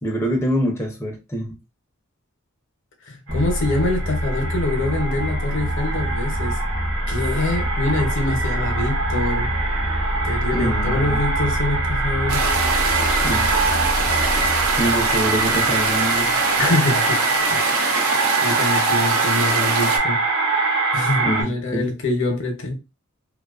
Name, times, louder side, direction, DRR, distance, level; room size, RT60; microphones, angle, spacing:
voice 1, 0.0-1.5 10.5-11.2 13.2-13.5 14.8-16.4 21.2-21.9, equal, 10° left, 0.4 m, -25 dB
voice 2, 3.0-6.6 7.1-9.5 10.2-12.5 16.6-17.2 17.5-18.1 18.4-20.2 20.9-22.7, left 2 dB, 60° left, 0.6 m, -25 dB
sound 1, 3.3-16.2, equal, 40° right, 0.6 m, -26 dB
sound 2, 3.3-21.4, right 3 dB, 70° right, 0.9 m, -24 dB
sound 3, 12.3-20.0, right 4 dB, 90° right, 0.5 m, -23 dB
2.4 x 2.2 x 2.3 m
head